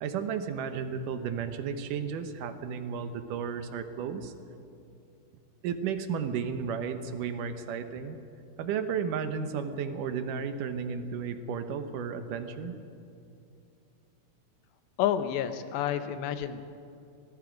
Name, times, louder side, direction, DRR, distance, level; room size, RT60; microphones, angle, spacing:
voice 1, 0.0-4.3 5.6-8.2 8.6-12.8, right 6 dB, 70° right, 8 dB, 2.0 m, -33 dB
voice 2, 15.0-16.6, left 10 dB, 90° left, 10 dB, 3.2 m, -29 dB
24.5 x 20.5 x 5.2 m, 2.6 s
omnidirectional pair, 4.8 m